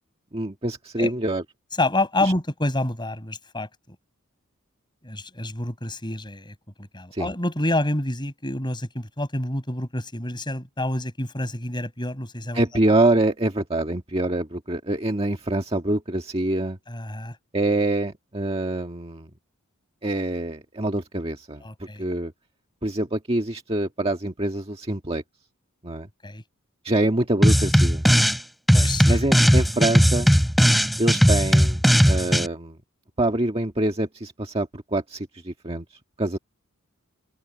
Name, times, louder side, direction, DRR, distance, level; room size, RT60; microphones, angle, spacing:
voice 1, 0.3-1.4 2.2-2.3 7.1-7.3 12.5-16.8 17.5-19.3 20.0-21.6 22.0-22.3 22.8-25.2 25.8-26.1 26.8-28.0 29.1-30.3 31.0-32.8 33.2-35.9 36.2-36.4, right 2 dB, 25° right, 1.7 m, -25 dB
voice 2, 1.8-4.0 5.0-12.6 16.9-17.4 21.6-22.0 26.2-26.4 28.7-29.2, left 1 dB, 20° left, 6.1 m, -28 dB
sound 1, 27.4-28.4 28.7-32.5, equal, ahead, 3.6 m, -18 dB
open air
head